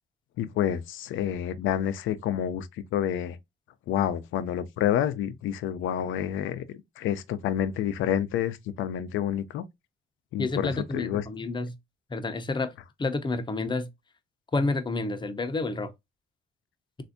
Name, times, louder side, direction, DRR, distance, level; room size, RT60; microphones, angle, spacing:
voice 1, 0.4-2.7 2.9-3.4 3.9-9.6 10.3-11.2, left 10 dB, 85° left, 0.5 m, -28 dB
voice 2, 10.4-11.8 12.1-12.7 13.0-13.9 14.5-15.9, left 3 dB, 25° left, 0.6 m, -29 dB
3.3 x 2.6 x 2.5 m
cardioid pair, 90°, 20 cm